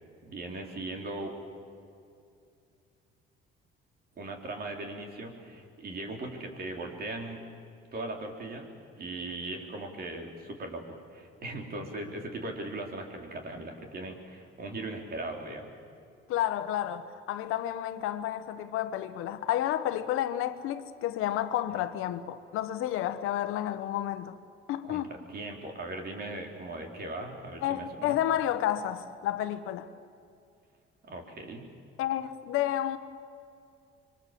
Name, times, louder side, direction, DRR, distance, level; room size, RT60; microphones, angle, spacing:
voice 1, 0.2-1.3 4.2-7.4 7.9-8.7 8.9-15.7 24.8-28.2 31.0-31.7, right 2 dB, 50° right, 4.2 m, -39 dB
voice 2, 16.3-24.4 24.7-25.1 27.6-29.9 32.0-33.0, left 12 dB, 85° left, 1.2 m, -31 dB
26.0 x 23.0 x 7.6 m
cardioid pair, 95°, 21 cm